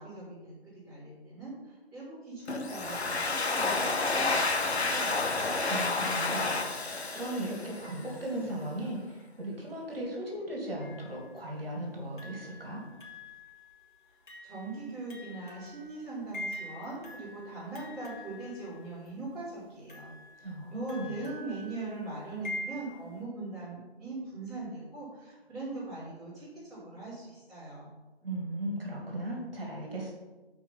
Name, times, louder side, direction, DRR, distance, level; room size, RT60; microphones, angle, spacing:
voice 1, 0.0-5.4 14.4-27.9, right 2 dB, ahead, -19 dB, 2.4 m, -41 dB
Domestic sounds home sounds, 2.5-8.1, left 3 dB, 85° left, 1.0 m, -30 dB
voice 2, 5.7-12.9 20.4-21.2 28.2-30.1, right 1 dB, 65° right, -1 dB, 2.4 m, -37 dB
sound 1, 10.8-11.4 12.2-19.1 19.9-23.2, left 1 dB, 50° left, 1.8 m, -45 dB
6.7 x 4.7 x 5.6 m, 1.2 s
figure-of-eight pair, 165°, 32 cm